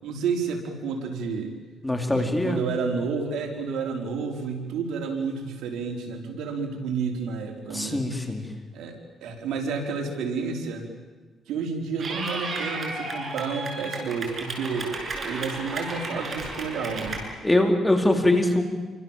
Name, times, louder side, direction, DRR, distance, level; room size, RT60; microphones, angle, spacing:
voice 1, 0.0-1.5 2.1-8.1 8.7-10.9 11.5-15.0 15.2-17.2, right 5 dB, 80° right, 2 dB, 4.9 m, -30 dB
voice 2, 1.8-2.6 7.7-8.4 17.4-18.6, left 1 dB, 10° left, 3 dB, 4.3 m, -22 dB
Clapping / Cheering, 12.0-17.2, right 3 dB, 45° right, 7.7 m, -33 dB
28.5 x 26.0 x 7.6 m, 1.3 s
cardioid pair, 90°, 0 cm